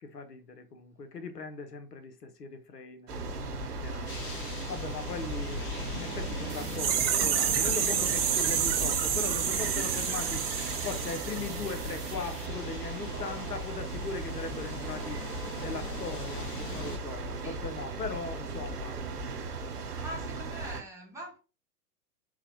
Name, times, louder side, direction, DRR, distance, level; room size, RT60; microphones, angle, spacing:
voice 1, 0.0-4.2 4.7-5.6 6.0-10.4 10.8-15.2 15.6-19.0, left 4 dB, 85° left, 0.8 m, -39 dB
sound 1, 3.1-20.8, right 2 dB, 70° right, 0.9 m, -37 dB
sound 2, 4.1-17.0, left 3 dB, 30° left, 1.2 m, -43 dB
sound 3, 6.5-12.1 12.4-12.5, right 8 dB, 40° right, 0.6 m, -29 dB
voice 2, 20.0-21.4, right 1 dB, 5° right, 0.8 m, -43 dB
3.8 x 2.1 x 2.9 m
figure-of-eight pair, 105°, 47 cm